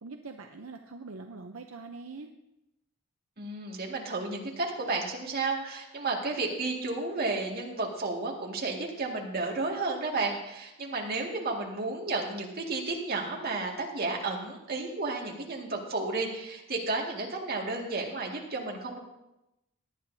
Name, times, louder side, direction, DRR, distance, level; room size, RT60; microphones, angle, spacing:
voice 1, 0.0-2.3, right 3 dB, 70° right, 4 dB, 0.7 m, -43 dB
voice 2, 3.4-19.0, right 3 dB, 45° right, -1 dB, 2.0 m, -32 dB
18.0 x 10.5 x 2.7 m, 0.91 s
head